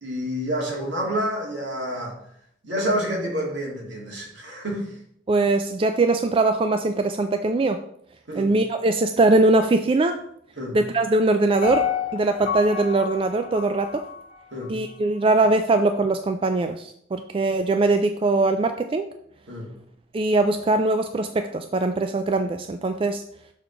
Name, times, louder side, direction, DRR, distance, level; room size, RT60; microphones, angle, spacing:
voice 1, 0.0-2.2 2.6-4.9 8.3-8.5 10.6-10.8 14.5-14.7 19.5-19.7, equal, 75° right, -2 dB, 2.3 m, -28 dB
voice 2, 5.3-7.8 8.3-10.2 10.7-14.0 14.7-19.1 20.1-23.2, right 2 dB, 30° right, 7 dB, 0.3 m, -21 dB
Piano, 11.6-14.7 15.1-15.2, left 7 dB, 35° left, 1.1 m, -30 dB
6.4 x 3.8 x 5.8 m, 0.71 s
head